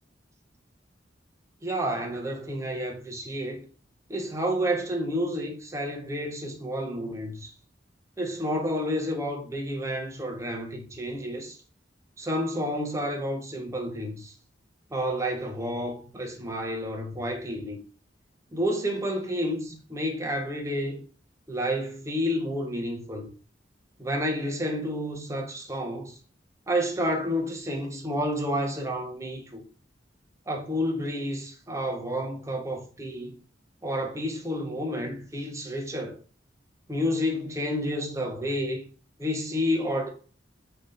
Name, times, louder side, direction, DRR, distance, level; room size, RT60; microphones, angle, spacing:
voice 1, 1.6-3.6 4.1-7.5 8.2-11.6 12.2-14.3 14.9-17.8 18.5-21.0 21.5-23.3 24.0-26.2 26.7-29.6 30.5-33.4 33.8-36.2 36.9-38.8 39.2-40.1, equal, 15° right, 0.5 m, -30 dB
3.1 x 2.0 x 2.5 m
head